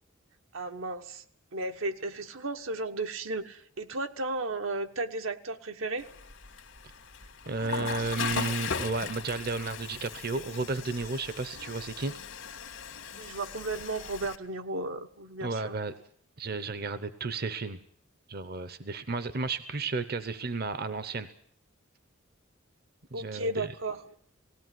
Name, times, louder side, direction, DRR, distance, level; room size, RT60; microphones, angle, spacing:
voice 1, 0.5-1.2 1.5-6.1 13.2-15.7 23.1-24.1, right 2 dB, 75° right, 6 dB, 1.2 m, -34 dB
Water / Toilet flush, 6.0-14.4, left 6 dB, 75° left, 1.8 m, -38 dB
voice 2, 7.5-12.1 15.4-15.9 16.4-17.8 18.3-21.3 23.1-23.7, right 3 dB, 50° right, 12 dB, 0.8 m, -33 dB
18.5 x 16.5 x 9.3 m, 0.64 s
head